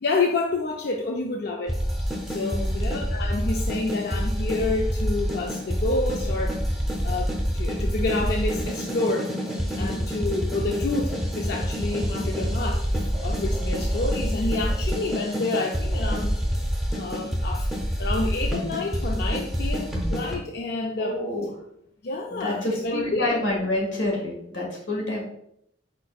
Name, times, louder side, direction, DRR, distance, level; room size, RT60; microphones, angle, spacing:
voice 1, 0.0-1.7 2.3-16.4 16.9-17.7 18.0-21.2 22.0-23.4, left 3 dB, 60° left, 1 dB, 0.4 m, -29 dB
sound 1, 1.7-20.4, equal, ahead, 0.7 m, -27 dB
voice 2, 2.4-2.7 9.7-10.1 21.0-21.5 22.3-25.2, left 1 dB, 85° left, -1 dB, 1.5 m, -28 dB
4.7 x 4.5 x 2.3 m, 0.74 s
head